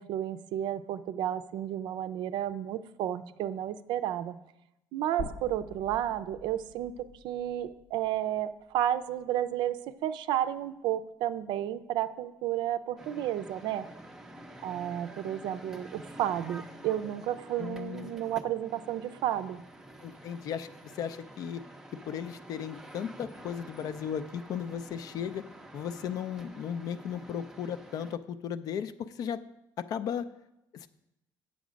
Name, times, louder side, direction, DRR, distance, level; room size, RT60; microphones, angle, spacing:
voice 1, 0.0-4.3 4.9-13.9 14.6-19.6, right 11 dB, 70° right, 12 dB, 0.5 m, -32 dB
sound 1, 5.2-9.3 9.7-9.8 11.2-11.3, left 3 dB, 85° left, 1.1 m, -46 dB
sound 2, 13.0-28.2, right 1 dB, 5° right, 0.5 m, -49 dB
voice 2, 17.6-18.1 20.0-21.6 22.0-25.4 25.7-29.4 29.8-30.3 30.7-30.9, left 8 dB, 50° left, 13 dB, 0.4 m, -36 dB
8.5 x 7.1 x 5.1 m, 0.87 s
cardioid pair, 165°, 8 cm